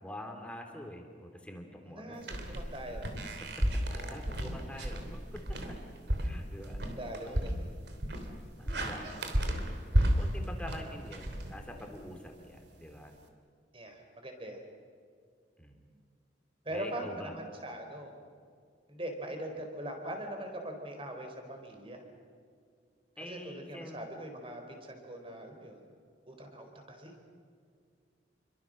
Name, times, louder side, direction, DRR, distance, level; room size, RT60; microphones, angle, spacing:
voice 1, 0.0-2.6 3.4-3.5 3.9-5.6 6.2-7.6 8.6-9.2 10.0-13.1 15.6-15.8 16.7-17.3 23.2-24.0, left 1 dB, 5° left, 3 dB, 3.1 m, -46 dB
voice 2, 1.9-3.1 7.0-7.5 13.7-14.6 16.6-18.1 18.9-22.0 23.2-25.8 26.3-27.1, right 1 dB, 30° right, 4 dB, 4.5 m, -41 dB
sound 1, 2.2-12.1, equal, 60° right, 3.2 m, -33 dB
29.0 x 24.5 x 6.6 m, 2.2 s
head